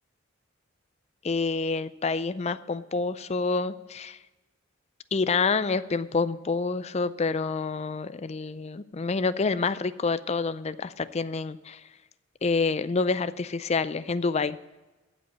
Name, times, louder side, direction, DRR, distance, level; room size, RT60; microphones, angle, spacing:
voice 1, 1.2-4.2 5.1-11.8 12.4-14.6, left 4 dB, 30° left, 14 dB, 0.4 m, -27 dB
15.0 x 5.2 x 7.2 m, 1.1 s
head